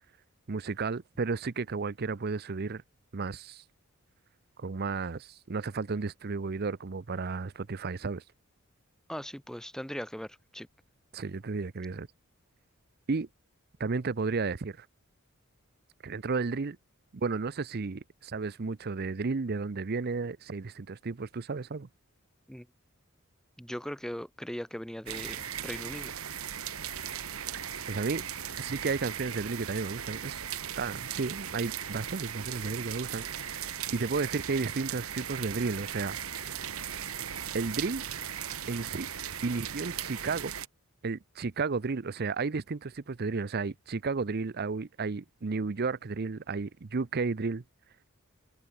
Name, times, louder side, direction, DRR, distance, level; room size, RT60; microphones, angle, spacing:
voice 1, 0.5-2.8 3.1-3.6 4.6-8.2 11.1-12.1 13.1-13.3 13.8-14.9 16.0-16.8 17.1-21.9 27.9-28.2 28.6-30.5 30.8-33.6 33.9-36.5 37.5-38.0 38.7-39.1 39.4-40.5 41.0-47.6, right 4 dB, 50° right, 0.6 m, -33 dB
voice 2, 9.1-10.7 22.5-22.7 23.6-26.2, equal, 5° left, 1.1 m, -39 dB
sound 1, 25.1-40.7, right 9 dB, 85° right, 1.7 m, -38 dB
head